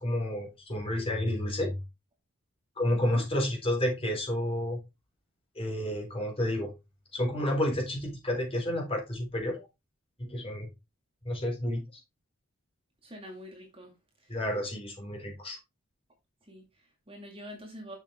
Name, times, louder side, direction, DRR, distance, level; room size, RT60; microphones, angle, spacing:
voice 1, 0.0-1.8 2.8-4.8 5.6-6.7 7.1-9.7 10.2-10.7 11.2-11.8 14.3-15.6, left 1 dB, 25° left, 3.8 m, -30 dB
voice 2, 2.9-3.2 13.0-14.4 16.4-18.0, equal, 25° right, 2.2 m, -46 dB
7.4 x 6.7 x 3.6 m
head